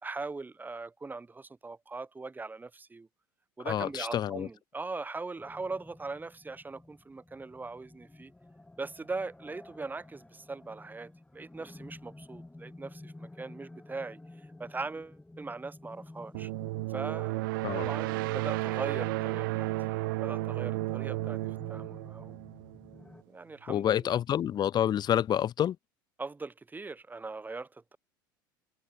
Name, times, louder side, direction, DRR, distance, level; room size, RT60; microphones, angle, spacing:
voice 1, 0.0-3.1 3.6-8.3 8.8-14.2 14.6-16.5 16.9-17.5 17.7-19.7 20.2-22.4 23.3-24.2 26.2-28.0, right 3 dB, 15° right, 3.2 m, -40 dB
voice 2, 3.6-4.5 17.6-17.9 23.7-25.8, left 10 dB, 40° left, 0.9 m, -28 dB
sound 1, 5.4-23.2, left 2 dB, 10° left, 7.6 m, -51 dB
sound 2, 16.3-23.0, right 22 dB, 75° right, 1.9 m, -33 dB
hypercardioid pair, 80°, 11 cm